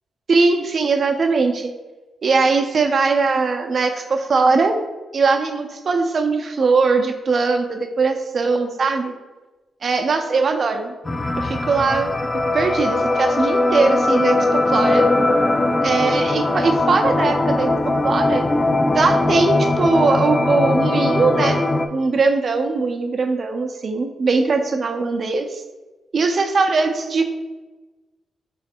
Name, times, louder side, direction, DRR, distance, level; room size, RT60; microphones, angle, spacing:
voice 1, 0.3-1.7 2.2-4.8 5.1-9.1 9.8-10.9 11.4-12.2 12.5-15.1 15.8-17.7 18.0-18.5 18.9-25.6 26.1-27.3, right 4 dB, 50° right, 5 dB, 0.5 m, -20 dB
sound 1, 11.1-21.9, left 2 dB, 25° left, 0.3 m, -20 dB
4.0 x 3.1 x 4.3 m, 1.2 s
cardioid pair, 100°, 0 cm